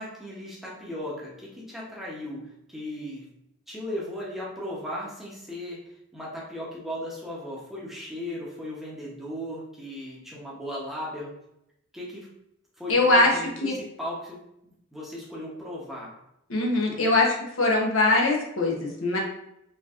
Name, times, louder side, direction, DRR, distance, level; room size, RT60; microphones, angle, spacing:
voice 1, 0.0-3.3 3.7-5.8 6.1-11.3 11.9-12.3 12.8-16.1, left 1 dB, ahead, -5 dB, 0.8 m, -36 dB
voice 2, 12.9-13.3 13.6-13.7 16.5-19.2, left 2 dB, 80° left, 0 dB, 0.9 m, -22 dB
4.2 x 2.9 x 2.4 m, 0.80 s
head